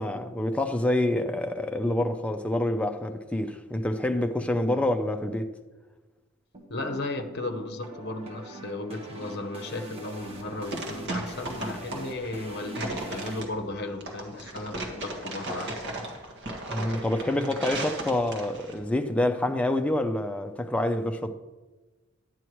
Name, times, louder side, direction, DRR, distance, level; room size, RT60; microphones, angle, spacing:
voice 1, 0.0-5.5 16.7-21.3, left 1 dB, 5° left, 0.5 m, -27 dB
sound 1, 6.5-13.4, right 2 dB, 30° right, 1.2 m, -43 dB
voice 2, 6.7-16.0, left 2 dB, 50° left, 0.8 m, -35 dB
sound 2, 10.3-18.8, right 2 dB, 55° right, 1.6 m, -36 dB
11.0 x 9.4 x 3.1 m
head